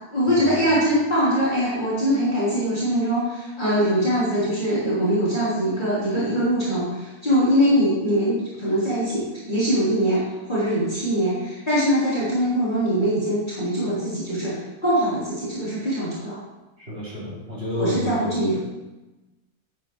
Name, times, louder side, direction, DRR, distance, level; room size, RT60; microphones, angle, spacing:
voice 1, 0.1-10.2 10.5-16.4 17.7-18.6, equal, 30° left, -11 dB, 4.1 m, -22 dB
voice 2, 16.8-18.2, left 1 dB, 45° right, -8 dB, 4.5 m, -30 dB
12.5 x 9.0 x 3.2 m, 1.1 s
omnidirectional pair, 1.5 m